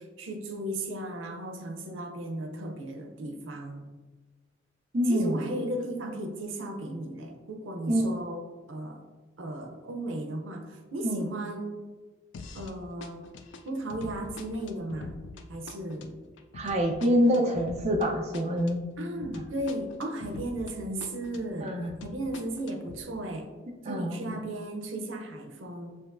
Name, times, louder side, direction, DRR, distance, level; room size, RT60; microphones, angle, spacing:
voice 1, 0.0-3.9 5.1-8.4 8.7-9.0 9.4-11.8 12.5-13.3 13.7-15.2 15.5-16.1 19.0-21.7 22.0-23.5 23.9-26.0, right 1 dB, 90° right, 4 dB, 0.6 m, -35 dB
voice 2, 4.9-5.5 7.9-8.1 11.0-11.3 16.5-18.8 19.3-19.4 21.6-21.9 23.8-24.4, equal, 35° right, 1 dB, 0.4 m, -26 dB
sound 1, 12.3-12.8 13.0-20.8 21.0-23.0, left 3 dB, 70° left, 0.4 m, -44 dB
6.7 x 2.9 x 2.5 m, 1.3 s
head